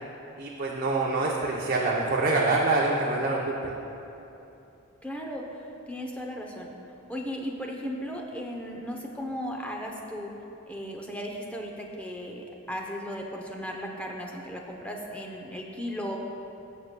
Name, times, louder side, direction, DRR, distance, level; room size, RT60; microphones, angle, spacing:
voice 1, 0.4-3.7, right 3 dB, 40° right, -3 dB, 0.6 m, -26 dB
voice 2, 5.0-5.4 5.9-6.7 7.1-10.3 10.7-16.2, equal, 5° left, 0 dB, 0.6 m, -36 dB
15.5 x 6.6 x 2.2 m, 2.9 s
head